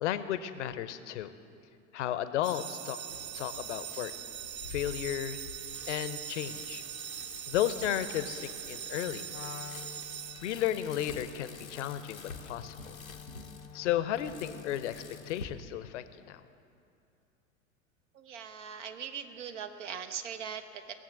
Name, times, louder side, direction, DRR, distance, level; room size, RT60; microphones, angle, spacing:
voice 1, 0.0-1.3 1.9-3.0 3.3-4.1 4.7-5.4 5.9-6.8 7.5-9.2 10.4-12.9 13.7-16.4, left 12 dB, 60° left, 12 dB, 0.8 m, -33 dB
sound 1, 2.4-11.1, right 11 dB, 80° right, 0.5 m, -42 dB
Bicycle, 3.1-15.4, left 4 dB, 90° left, 1.0 m, -48 dB
Wind instrument woodwind instrument, 9.3-15.7, left 8 dB, 30° left, 0.5 m, -50 dB
voice 2, 18.1-20.9, right 7 dB, 60° right, 7 dB, 1.0 m, -40 dB
18.0 x 7.3 x 7.4 m, 2.5 s
figure-of-eight pair, 80°, 40 cm